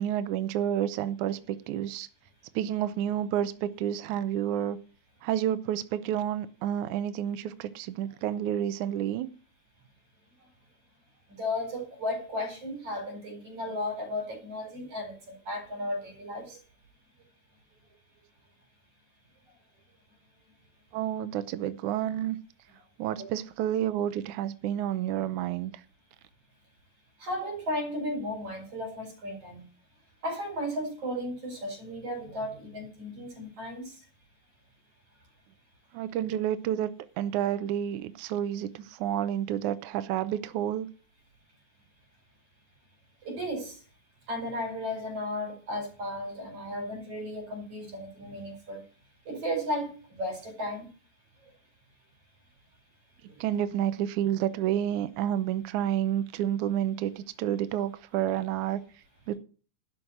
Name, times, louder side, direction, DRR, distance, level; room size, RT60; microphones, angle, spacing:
voice 1, 0.0-2.1 2.6-4.8 5.2-9.3 20.9-22.4 23.0-25.7 35.9-36.9 37.2-40.9 53.4-58.8 59.3-59.4, right 11 dB, 80° right, 1.8 m, -30 dB
voice 2, 11.3-16.6 27.2-29.6 30.2-34.0 43.2-43.8 44.3-48.8 49.3-50.9 53.3-53.5, left 1 dB, 40° right, 5.3 m, -34 dB
11.5 x 6.3 x 7.9 m
omnidirectional pair, 4.3 m